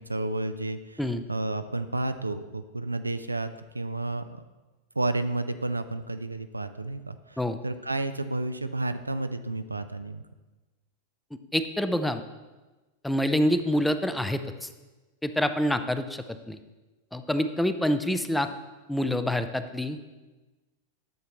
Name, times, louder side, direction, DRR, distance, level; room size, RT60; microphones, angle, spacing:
voice 1, 0.0-1.0 1.3-4.4 5.0-10.2, right 2 dB, 80° right, 11 dB, 0.4 m, -31 dB
voice 2, 11.5-12.2 13.0-14.7 15.2-16.6 17.1-18.5 18.9-20.1, equal, 5° left, 9 dB, 0.5 m, -26 dB
10.5 x 6.8 x 3.0 m, 1.2 s
figure-of-eight pair, 90°, 0 cm